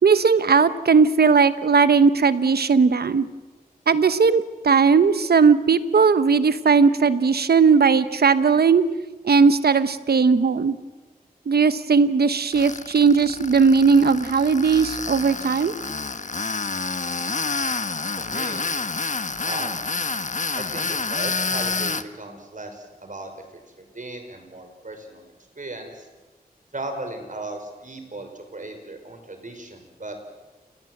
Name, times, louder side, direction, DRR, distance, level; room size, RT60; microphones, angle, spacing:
voice 1, 0.0-3.3 3.9-8.8 9.2-10.8 11.5-15.7, right 5 dB, 85° right, 13 dB, 1.1 m, -18 dB
Tools, 12.5-22.0, left 4 dB, 50° left, 1.2 m, -28 dB
voice 2, 18.2-18.7 19.4-19.8 20.6-23.3 23.8-26.1 26.7-30.2, right 2 dB, 55° right, 6 dB, 5.3 m, -36 dB
28.5 x 19.5 x 7.9 m, 1.2 s
cardioid pair, 55°, 16 cm